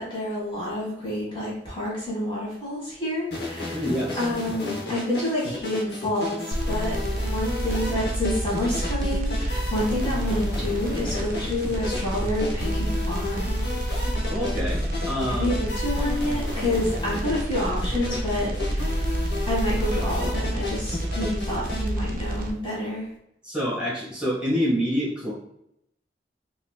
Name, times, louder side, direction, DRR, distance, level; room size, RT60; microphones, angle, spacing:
voice 1, 0.0-3.9 4.2-13.6 15.3-19.1 19.4-23.1, left 1 dB, 30° left, -7 dB, 1.3 m, -29 dB
sound 1, 3.3-21.9, left 2 dB, 70° left, 0.7 m, -33 dB
voice 2, 3.7-4.3 14.3-15.5 23.4-25.3, equal, 5° right, -9 dB, 1.4 m, -27 dB
sound 2, 6.5-22.5, right 1 dB, 50° right, 0.4 m, -28 dB
4.0 x 2.7 x 2.2 m, 0.77 s
head